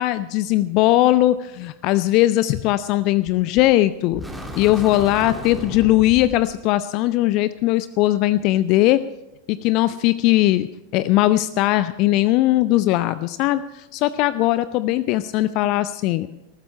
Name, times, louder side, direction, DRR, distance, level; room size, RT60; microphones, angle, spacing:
voice 1, 0.0-4.2 4.6-9.0 9.5-10.7 10.9-16.3, left 15 dB, 40° left, 15 dB, 0.4 m, -19 dB
sound 1, 3.3-3.7 4.1-6.5, equal, ahead, 2.2 m, -34 dB
19.0 x 14.5 x 4.4 m, 0.93 s
figure-of-eight pair, 90°, 0 cm